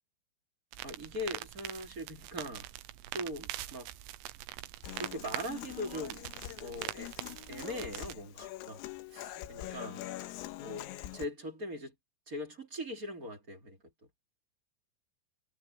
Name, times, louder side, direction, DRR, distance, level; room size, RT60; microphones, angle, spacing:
sound 1, 0.7-8.1, right 15 dB, 85° right, 3.7 m, -43 dB
voice 1, 0.8-2.7 3.1-3.9 5.0-6.3 6.6-7.1 7.5-8.8 9.1-10.1 10.6-10.9 11.1-11.9 12.3-13.8, left 1 dB, 20° right, 2.8 m, -40 dB
Human voice / Acoustic guitar, 4.8-11.3, left 15 dB, 85° left, 3.9 m, -44 dB
omnidirectional pair, 6.0 m